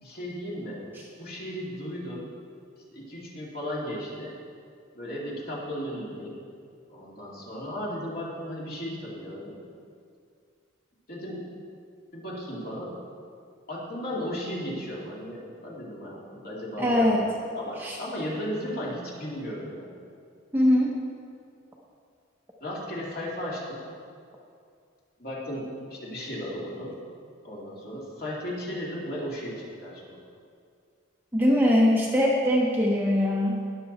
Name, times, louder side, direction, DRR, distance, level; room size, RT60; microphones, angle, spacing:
voice 1, 0.0-0.8 1.2-2.3 2.9-4.4 4.9-6.4 6.9-9.6 11.1-11.4 12.1-13.0 13.7-20.0 22.6-23.8 25.2-26.9 27.4-30.2, equal, 45° left, -5 dB, 2.7 m, -35 dB
voice 2, 16.8-17.2 17.8-18.0 20.5-20.9 31.3-33.6, left 1 dB, 10° right, -2 dB, 0.9 m, -22 dB
19.0 x 6.9 x 4.2 m, 2.3 s
head